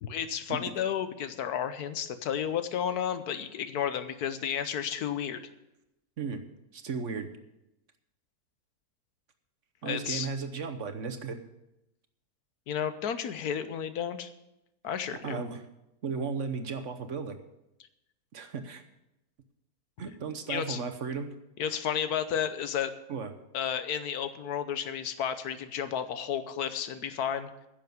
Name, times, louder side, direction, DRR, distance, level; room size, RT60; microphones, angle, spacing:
voice 1, 0.0-5.4 9.8-10.3 12.7-14.3 14.8-15.4 20.5-20.8 21.6-22.9 23.5-27.5, left 8 dB, 85° left, 11 dB, 1.4 m, -32 dB
voice 2, 6.7-7.3 9.8-11.4 15.2-15.6 16.0-17.4 18.3-18.8 20.0-21.3 23.1-23.3, right 5 dB, 55° right, 8 dB, 1.2 m, -35 dB
10.5 x 7.0 x 9.2 m, 0.90 s
omnidirectional pair, 1.6 m